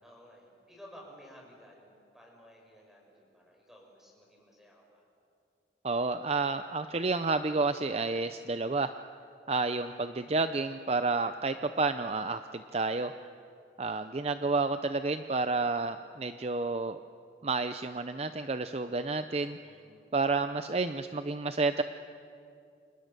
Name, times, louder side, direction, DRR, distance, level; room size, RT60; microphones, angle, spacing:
voice 1, 0.0-5.0 9.8-10.1 13.9-14.5 19.6-20.1, equal, ahead, -1 dB, 5.8 m, -55 dB
voice 2, 5.8-8.9 9.5-13.1 13.8-17.0 17.4-19.6 20.1-21.8, right 3 dB, 35° right, 10 dB, 0.6 m, -30 dB
30.0 x 26.5 x 6.8 m, 2.5 s
head